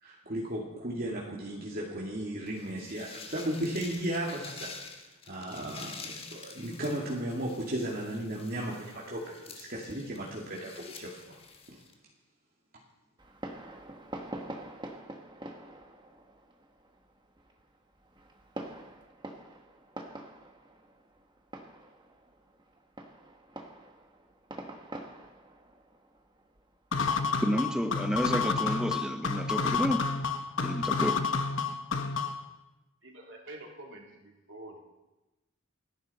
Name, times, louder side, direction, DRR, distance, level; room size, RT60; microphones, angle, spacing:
voice 1, 0.0-4.7 5.3-11.4, right 1 dB, 45° right, -4 dB, 2.3 m, -35 dB
sound 1, 2.5-11.9, left 4 dB, 25° left, 1.5 m, -48 dB
Fireworks, 13.2-27.3, right 1 dB, 20° right, 1.5 m, -46 dB
sound 2, 26.9-32.5, left 5 dB, 60° left, 1.1 m, -30 dB
voice 2, 27.4-30.0 30.6-31.2, equal, 5° right, 6 dB, 0.9 m, -30 dB
voice 3, 33.0-34.8, right 1 dB, 60° right, -1 dB, 3.6 m, -47 dB
28.5 x 11.0 x 4.3 m, 1.0 s
head